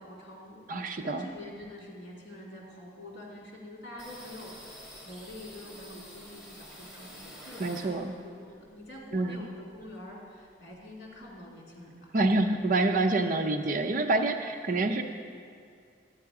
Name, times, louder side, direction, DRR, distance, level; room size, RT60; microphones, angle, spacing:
voice 1, 0.0-12.2, left 1 dB, 65° left, -3 dB, 2.4 m, -46 dB
voice 2, 0.7-1.3 7.6-8.1 9.1-9.5 12.1-15.0, right 2 dB, 45° right, 5 dB, 0.5 m, -27 dB
sound 1, 4.0-8.3 8.7-10.0 10.3-10.4 10.7-11.4, equal, 15° left, 2.8 m, -49 dB
11.0 x 8.9 x 4.8 m, 2.3 s
head